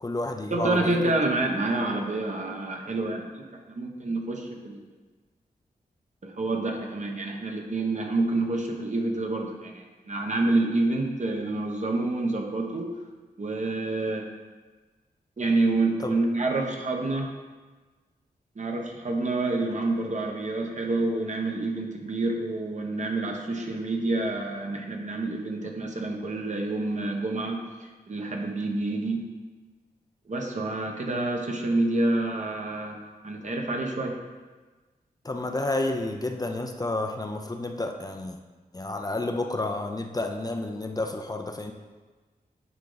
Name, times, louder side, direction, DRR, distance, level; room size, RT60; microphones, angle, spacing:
voice 1, 0.0-1.1 16.0-16.1 35.2-38.4 38.7-41.7, left 2 dB, 25° left, 4 dB, 0.5 m, -30 dB
voice 2, 0.5-3.3 3.7-4.8 6.2-12.9 13.4-14.2 15.4-17.3 18.6-29.2 30.3-33.0 33.2-34.2, right 2 dB, 50° right, 1 dB, 1.1 m, -28 dB
9.5 x 3.7 x 4.0 m, 1.3 s
cardioid pair, 70°, 16 cm